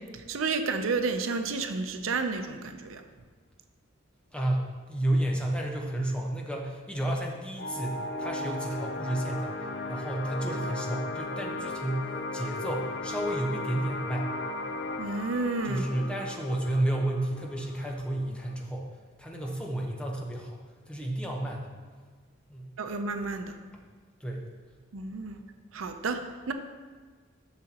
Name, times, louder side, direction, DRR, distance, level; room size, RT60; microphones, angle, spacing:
voice 1, 0.0-3.0 15.0-15.8 22.8-23.6 24.9-25.4 25.7-26.5, right 4 dB, 80° right, 7 dB, 0.6 m, -31 dB
voice 2, 4.3-14.4 15.6-18.9 19.2-20.6 20.9-21.7 22.5-22.7 24.2-24.5, right 1 dB, 5° left, -1 dB, 0.9 m, -31 dB
sound 1, 7.6-18.6, left 2 dB, 60° left, 0.5 m, -36 dB
11.0 x 6.5 x 2.9 m, 1.5 s
head